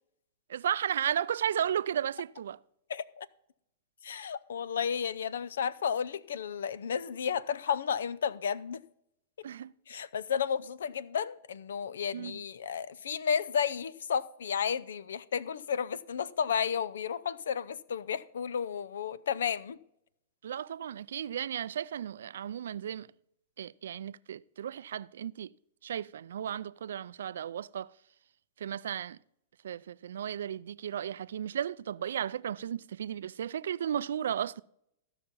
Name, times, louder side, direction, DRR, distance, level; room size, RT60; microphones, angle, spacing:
voice 1, 0.5-2.6 9.4-10.0 12.1-12.4 20.4-23.1 23.6-25.5 25.8-27.9 28.6-29.2 29.6-34.6, right 9 dB, 80° right, 0.3 m, -34 dB
voice 2, 2.9-3.3 4.0-8.8 9.9-19.8, left 7 dB, 85° left, 0.5 m, -32 dB
14.5 x 5.7 x 5.4 m
hypercardioid pair, 125°, 0 cm